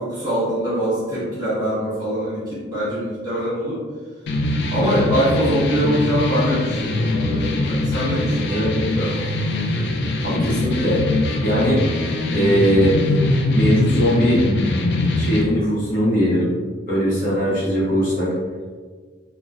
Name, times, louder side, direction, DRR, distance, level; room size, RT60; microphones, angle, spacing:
voice 1, 0.0-3.8 4.7-9.1 17.5-17.6, equal, 20° right, -9 dB, 1.2 m, -23 dB
sound 1, 4.3-15.4, left 2 dB, 60° left, 0.4 m, -22 dB
voice 2, 10.2-11.0 11.4-11.8 12.3-12.9 13.5-14.4 15.2-16.5 16.9-18.3, equal, 45° left, -8 dB, 1.0 m, -20 dB
3.8 x 2.1 x 2.4 m, 1.5 s
head